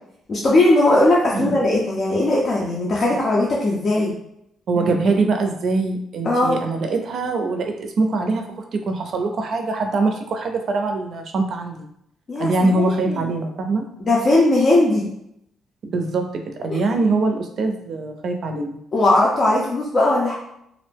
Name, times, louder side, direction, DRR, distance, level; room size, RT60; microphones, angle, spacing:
voice 1, 0.3-4.1 6.2-6.6 12.3-13.2 14.0-15.1 16.7-16.8 18.9-20.3, left 2 dB, 45° left, -4 dB, 0.5 m, -18 dB
voice 2, 1.3-1.7 4.7-11.9 12.4-13.9 15.9-18.8, right 3 dB, 60° right, 4 dB, 0.4 m, -23 dB
2.5 x 2.1 x 3.3 m, 0.76 s
cardioid pair, 90°, 0 cm